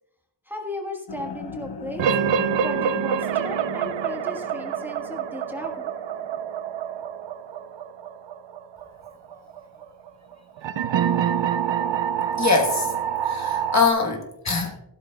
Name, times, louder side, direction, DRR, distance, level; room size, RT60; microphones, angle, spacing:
voice 1, 0.4-5.9 6.2-6.4, left 1 dB, 5° right, 0 dB, 1.5 m, -36 dB
sound 1, 1.1-7.2, left 5 dB, 60° left, 1.0 m, -41 dB
sound 2, 2.0-13.9, right 8 dB, 80° right, 0.7 m, -26 dB
voice 2, 12.4-12.9 13.2-14.8, left 4 dB, 40° left, 1 dB, 1.3 m, -23 dB
13.5 x 12.0 x 2.3 m, 0.91 s
wide cardioid pair, 130°, 43 cm